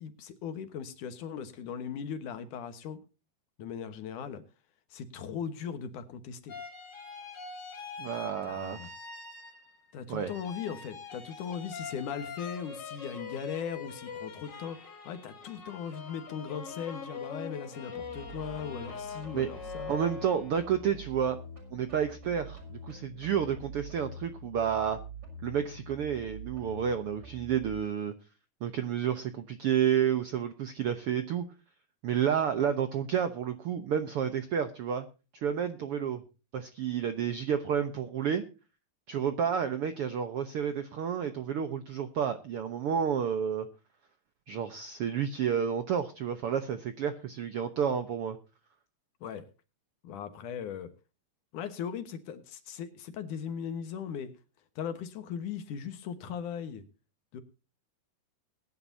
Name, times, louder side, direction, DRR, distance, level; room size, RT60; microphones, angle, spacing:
voice 1, 0.0-3.0 3.6-4.4 4.9-6.6 8.4-8.9 9.9-20.0 49.2-49.5 50.0-50.9 51.5-54.3 54.8-56.8 57.3-57.4, left 7 dB, 70° left, 10 dB, 2.7 m, -38 dB
sound 1, 6.5-9.9 10.2-20.8, left 5 dB, 30° left, 3.4 m, -43 dB
voice 2, 8.0-8.8 10.1-10.3 19.3-19.5 19.9-21.4 21.7-25.0 25.4-28.1 28.6-31.4 32.0-35.0 35.3-36.2 36.5-38.4 39.1-43.7 44.5-48.4, right 8 dB, 70° right, 9 dB, 1.3 m, -30 dB
sound 2, 18.0-27.8, right 1 dB, 25° right, 6.1 m, -46 dB
21.5 x 10.5 x 2.8 m, 0.32 s
omnidirectional pair, 3.9 m